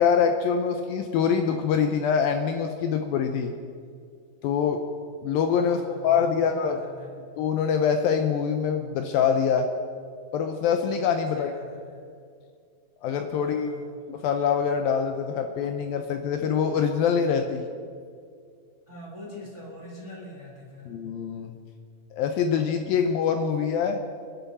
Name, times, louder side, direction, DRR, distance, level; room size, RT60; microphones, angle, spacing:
voice 1, 0.0-3.5 4.4-4.8 5.2-6.8 7.4-9.7 10.3-11.5 13.0-13.7 14.1-17.6 20.9-21.5 22.1-24.0, left 7 dB, 80° left, 5 dB, 2.4 m, -24 dB
voice 2, 5.6-7.2 11.3-12.1 13.4-13.9 18.9-20.9, left 1 dB, 10° right, -3 dB, 2.6 m, -44 dB
27.0 x 9.8 x 4.1 m, 2.2 s
omnidirectional pair, 4.5 m